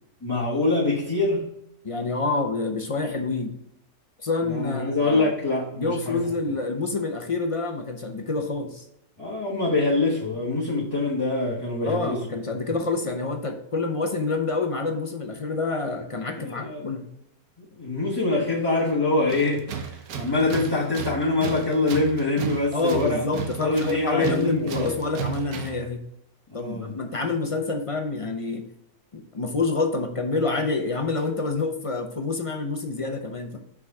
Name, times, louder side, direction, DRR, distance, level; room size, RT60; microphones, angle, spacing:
voice 1, 0.2-1.5 4.5-6.3 9.2-12.3 16.4-16.8 17.6-23.2 23.6-24.9 26.5-26.9, left 2 dB, 15° left, 1.1 m, -25 dB
voice 2, 1.8-3.5 4.2-5.3 5.8-8.8 11.8-17.0 22.7-26.0 26.5-28.6 29.1-33.6, left 3 dB, 35° left, 0.5 m, -27 dB
Tools, 19.3-25.9, right 7 dB, 75° right, 1.2 m, -34 dB
6.0 x 4.7 x 3.6 m
omnidirectional pair, 1.6 m